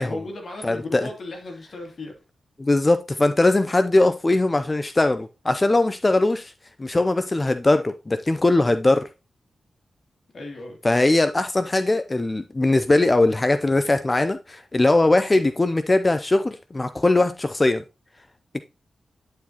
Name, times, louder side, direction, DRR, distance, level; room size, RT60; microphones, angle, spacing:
voice 1, 0.0-2.2 10.3-10.8, left 2 dB, 60° left, 2.5 m, -35 dB
voice 2, 0.6-1.1 2.6-6.5 6.8-9.0 10.8-17.8, left 2 dB, 30° left, 0.5 m, -20 dB
10.0 x 4.7 x 2.9 m
cardioid pair, 45°, 0 cm